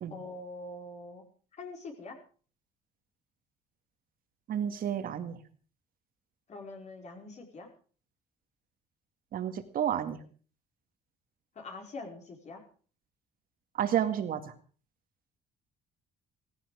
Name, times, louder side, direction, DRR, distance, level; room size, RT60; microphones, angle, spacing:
voice 1, 0.1-1.2 1.5-2.2 6.5-7.7 11.6-12.6, left 2 dB, 45° left, 2 dB, 5.1 m, -44 dB
voice 2, 4.5-5.4 9.3-10.2 13.7-14.5, right 9 dB, 60° right, 9 dB, 2.2 m, -31 dB
17.0 x 15.5 x 5.1 m, 0.42 s
cardioid pair, 110°, 17 cm